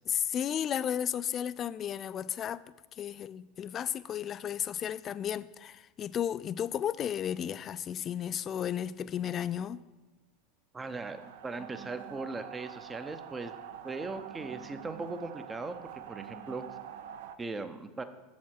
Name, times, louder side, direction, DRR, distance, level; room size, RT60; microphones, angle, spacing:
voice 1, 0.1-2.6 3.0-9.8, left 9 dB, 35° left, 0.3 m, -33 dB
voice 2, 10.7-13.5 13.8-16.6 17.4-18.0, right 3 dB, 20° right, 0.6 m, -39 dB
sound 1, 10.8-17.4, right 10 dB, 65° right, 0.5 m, -46 dB
7.3 x 7.3 x 4.4 m
hypercardioid pair, 85°, 0 cm